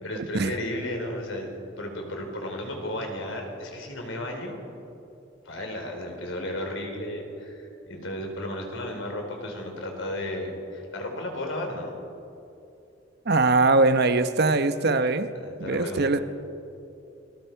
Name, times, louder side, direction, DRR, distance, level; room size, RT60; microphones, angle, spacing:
voice 1, 0.0-4.6 5.4-12.0 15.4-16.1, left 1 dB, 80° left, 2 dB, 3.9 m, -34 dB
voice 2, 13.3-15.3 15.6-16.2, right 3 dB, 55° right, 10 dB, 0.9 m, -21 dB
28.5 x 20.5 x 4.6 m, 2.8 s
head